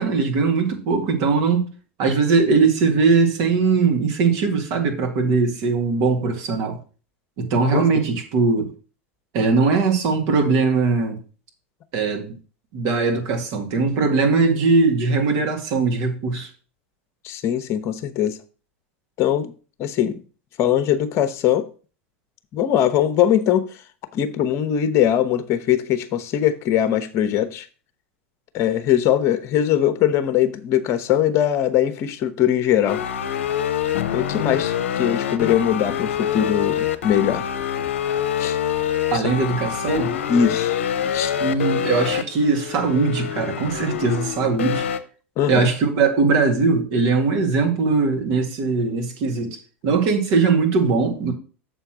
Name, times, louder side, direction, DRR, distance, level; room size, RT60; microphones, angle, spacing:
voice 1, 0.0-1.7 2.0-6.8 7.4-8.7 9.3-11.2 11.9-12.3 12.7-16.5 39.1-40.1 41.4-44.9 45.5-49.5 49.8-51.3, right 4 dB, 55° right, 2.0 m, -20 dB
voice 2, 7.7-8.0 17.2-18.4 19.2-19.5 19.8-20.2 20.6-21.6 22.5-23.7 24.1-27.7 28.5-33.0 34.1-37.5 38.4-38.6 39.1-39.2 40.3-41.3 45.4-45.7, left 10 dB, 45° left, 0.9 m, -21 dB
sound 1, 32.9-45.0, left 9 dB, 75° left, 0.7 m, -25 dB
6.9 x 4.5 x 5.9 m
hypercardioid pair, 90°, 7 cm